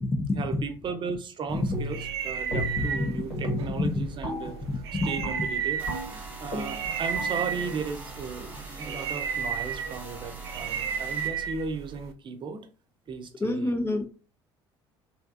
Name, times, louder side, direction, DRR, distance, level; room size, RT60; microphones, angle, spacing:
voice 1, 0.3-4.6 5.0-12.6 13.1-13.7, right 5 dB, 35° right, 0.7 m, -36 dB
sound 1, 1.5-12.1, right 7 dB, 75° right, 0.4 m, -34 dB
sound 2, 1.7-2.2 2.5-3.0 3.3-9.1, equal, 65° left, 1.7 m, -37 dB
voice 2, 4.7-5.1 13.4-14.1, left 2 dB, 15° left, 0.8 m, -27 dB
sound 3, 5.8-11.3, right 2 dB, 10° right, 1.3 m, -43 dB
3.3 x 2.7 x 2.5 m
figure-of-eight pair, 60°, 14 cm